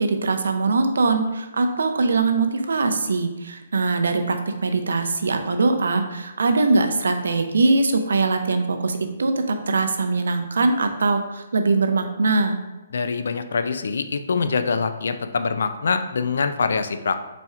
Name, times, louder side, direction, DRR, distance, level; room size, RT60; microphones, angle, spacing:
voice 1, 0.0-12.6, right 3 dB, 85° right, 6 dB, 0.5 m, -22 dB
voice 2, 12.9-17.2, left 5 dB, 75° left, 9 dB, 0.3 m, -24 dB
4.2 x 2.4 x 4.3 m, 1.1 s
hypercardioid pair, 160°, 0 cm